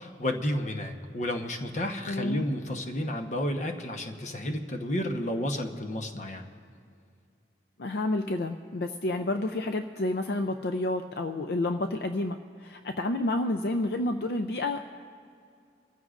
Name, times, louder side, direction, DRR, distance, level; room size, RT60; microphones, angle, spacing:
voice 1, 0.0-6.5, left 1 dB, 45° left, 5 dB, 1.0 m, -31 dB
voice 2, 2.1-2.4 7.8-14.8, left 2 dB, 65° left, 6 dB, 0.5 m, -30 dB
25.0 x 14.5 x 2.5 m, 2.4 s
head